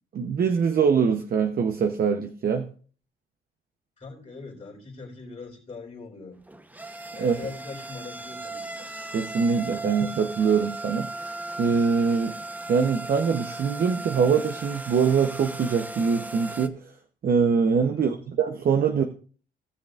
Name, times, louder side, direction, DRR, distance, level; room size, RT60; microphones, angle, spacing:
voice 1, 0.1-2.6 7.2-7.4 9.1-12.4 12.7-16.8 17.2-19.0, right 6 dB, 50° right, 0.8 m, -23 dB
voice 2, 4.0-6.4 7.1-8.9 17.9-18.2, left 3 dB, 35° left, 3.2 m, -41 dB
sound 1, 6.3-16.7, right 2 dB, 10° right, 0.8 m, -37 dB
18.0 x 6.4 x 2.5 m
cardioid pair, 90°, 20 cm